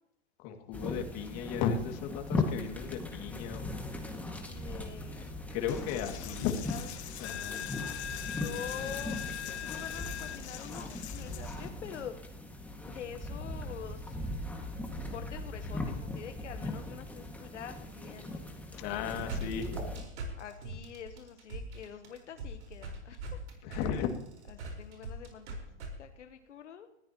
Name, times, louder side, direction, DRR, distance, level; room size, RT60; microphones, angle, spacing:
voice 1, 0.4-3.8 5.5-6.6 7.2-7.6 18.8-20.0 23.6-24.1, left 7 dB, 45° left, 5 dB, 2.4 m, -35 dB
sound 1, 0.7-20.0, left 1 dB, 5° left, 1.9 m, -39 dB
voice 2, 4.4-5.4 5.9-6.9 8.2-9.2 9.6-12.2 12.8-14.2 15.1-19.1 19.4-19.5 20.4-23.4 23.7-23.8 24.5-26.9, left 8 dB, 85° left, 7 dB, 1.2 m, -46 dB
Coin (dropping), 5.7-11.7, left 10 dB, 70° left, 1.8 m, -41 dB
sound 2, 18.9-25.9, right 2 dB, 75° right, 4.7 m, -40 dB
20.0 x 14.5 x 3.0 m, 0.81 s
hypercardioid pair, 115°, 35 cm